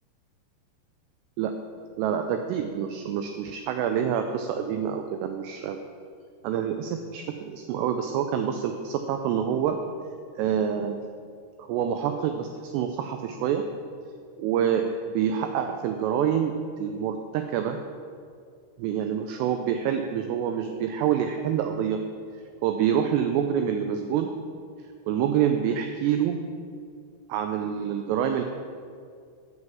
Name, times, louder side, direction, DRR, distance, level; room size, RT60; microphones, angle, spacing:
voice 1, 2.0-5.8 6.4-9.8 10.4-11.0 11.6-13.6 14.4-17.8 18.8-22.0 22.6-24.3 25.1-26.4 27.3-28.4, right 8 dB, 90° right, 6 dB, 2.4 m, -27 dB
7.4 x 6.3 x 7.4 m, 2.2 s
omnidirectional pair, 5.4 m